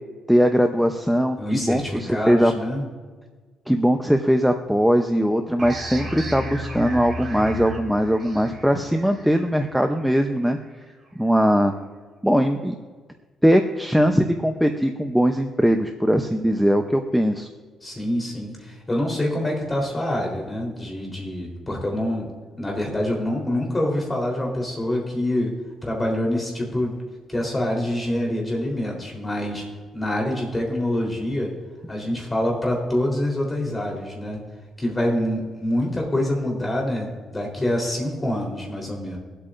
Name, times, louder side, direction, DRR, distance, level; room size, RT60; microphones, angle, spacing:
voice 1, 0.3-2.5 3.7-10.6 11.2-11.7 12.2-12.7 13.4-17.5, equal, ahead, 5 dB, 0.8 m, -20 dB
voice 2, 1.4-2.8 17.8-22.3 22.6-25.5 25.8-27.0 27.3-29.6 29.9-31.5 31.9-34.4 34.8-39.2, left 1 dB, 20° left, -1 dB, 3.9 m, -26 dB
sound 1, 5.6-10.9, equal, 30° right, 2.9 m, -34 dB
24.0 x 8.4 x 2.6 m, 1.4 s
cardioid pair, 90°, 0 cm